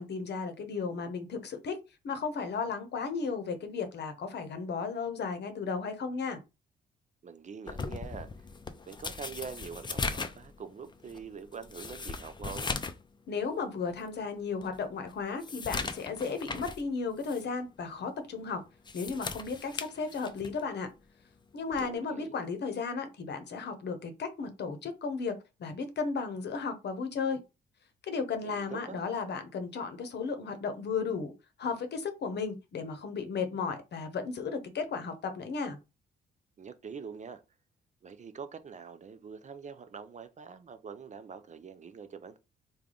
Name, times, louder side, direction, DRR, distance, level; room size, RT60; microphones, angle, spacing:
voice 1, 0.0-1.8 2.0-6.4 13.3-18.6 18.9-20.9 21.5-27.4 28.0-31.3 31.6-35.8, left 5 dB, 60° left, 0.8 m, -34 dB
voice 2, 7.2-8.3 8.9-12.7 21.8-22.3 28.4-29.0 36.6-37.4 38.0-42.4, right 6 dB, 40° right, 0.5 m, -44 dB
sound 1, 7.7-13.1 13.4-13.5 14.1-14.2 14.6-16.8 17.2-17.4 18.7-20.6 21.7-21.9, left 4 dB, 25° left, 0.4 m, -38 dB
3.3 x 2.3 x 3.8 m
cardioid pair, 70°, 20 cm